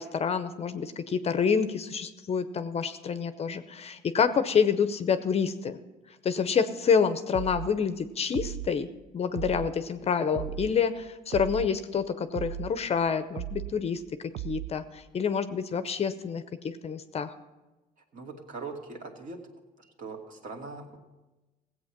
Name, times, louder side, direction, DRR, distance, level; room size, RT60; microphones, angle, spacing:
voice 1, 0.0-5.8 6.2-8.9 9.1-14.0 14.4-17.3, left 6 dB, 35° left, 11 dB, 0.7 m, -28 dB
sound 1, 7.3-7.7 8.3-8.7 9.3-9.7 10.3-10.7 11.3-11.7 12.3-12.7 13.3-13.7 14.3-14.7, right 12 dB, 70° right, 0.5 m, -36 dB
voice 2, 18.1-19.4 19.8-21.0, right 4 dB, 50° right, 1 dB, 2.2 m, -41 dB
16.5 x 8.2 x 5.9 m, 1.1 s
cardioid pair, 110°, 17 cm